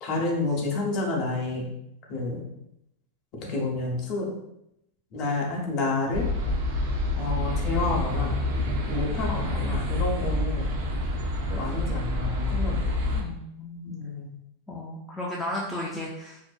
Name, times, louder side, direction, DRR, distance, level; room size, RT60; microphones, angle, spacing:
voice 1, 0.0-1.7 2.1-2.4 3.4-4.3 5.1-6.3 7.2-8.3 8.9-10.7 11.5-12.9 13.8-14.3, left 2 dB, 40° left, -1 dB, 0.7 m, -29 dB
sound 1, 6.1-13.2, left 2 dB, 55° right, 0.5 m, -27 dB
voice 2, 13.1-13.9 14.7-16.4, left 1 dB, 5° left, -5 dB, 0.3 m, -34 dB
2.5 x 2.0 x 2.4 m, 0.81 s
supercardioid pair, 145°, 0 cm